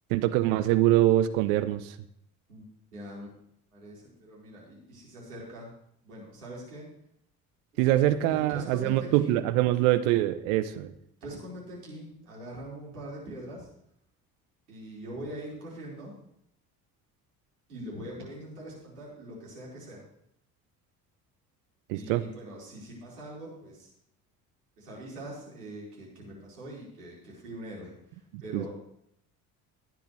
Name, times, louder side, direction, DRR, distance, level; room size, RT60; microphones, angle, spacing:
voice 1, 0.1-2.0 7.8-10.9 21.9-22.2 28.3-28.7, right 14 dB, 65° right, 13 dB, 0.7 m, -24 dB
voice 2, 2.9-3.3 3.7-5.7 6.0-6.9 7.7-9.4 11.2-13.7 14.7-16.1 17.7-20.0 21.9-23.9 24.8-28.7, right 1 dB, 85° right, -5 dB, 4.9 m, -42 dB
16.5 x 10.5 x 3.3 m, 0.72 s
hypercardioid pair, 55°, 44 cm